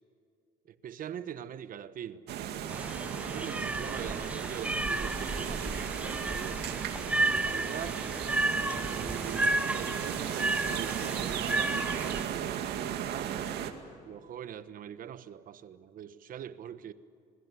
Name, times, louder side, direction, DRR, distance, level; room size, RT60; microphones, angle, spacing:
voice 1, 0.7-2.2 2.5-2.8 3.2-6.8 7.4-8.0 8.8-13.3 14.0-16.9, right 9 dB, 55° right, 1.2 m, -43 dB
sound 1, 2.3-13.7, right 9 dB, 75° right, 2.2 m, -35 dB
sound 2, 2.7-12.2, right 2 dB, 10° right, 0.7 m, -32 dB
27.5 x 21.5 x 9.6 m
cardioid pair, 110°, 17 cm